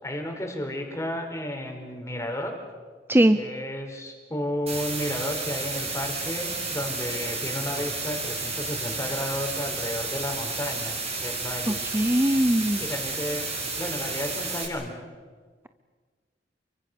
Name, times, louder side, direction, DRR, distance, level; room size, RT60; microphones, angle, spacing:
voice 1, 0.0-2.6 3.3-11.8 12.8-13.5 13.8-14.9, left 1 dB, 15° left, 2 dB, 4.7 m, -32 dB
sound 1, 4.7-14.7, right 3 dB, 35° right, 6.4 m, -32 dB
voice 2, 11.7-12.8, right 1 dB, 15° right, 10 dB, 0.7 m, -21 dB
29.5 x 24.0 x 6.9 m, 1.5 s
head